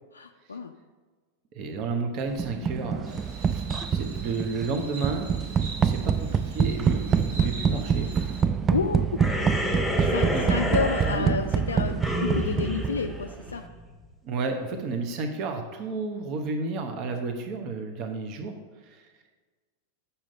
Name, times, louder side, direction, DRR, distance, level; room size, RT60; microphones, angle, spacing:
voice 1, 0.1-0.7 8.7-9.2 10.0-13.7, left 5 dB, 75° left, 4 dB, 0.3 m, -30 dB
voice 2, 1.5-3.1 3.4-3.7 3.9-5.3 5.8-8.2 10.0-10.7 11.1-11.4 14.2-18.5 18.9-19.0, right 3 dB, 40° right, 5 dB, 0.9 m, -32 dB
sound 1, 2.4-13.3, right 7 dB, 20° right, 0.3 m, -26 dB
Insect, 3.1-8.4, right 2 dB, 60° right, 1.3 m, -43 dB
sound 2, 9.2-13.9, left 1 dB, ahead, 1.2 m, -30 dB
7.4 x 5.6 x 5.2 m, 1.4 s
figure-of-eight pair, 90°, 0 cm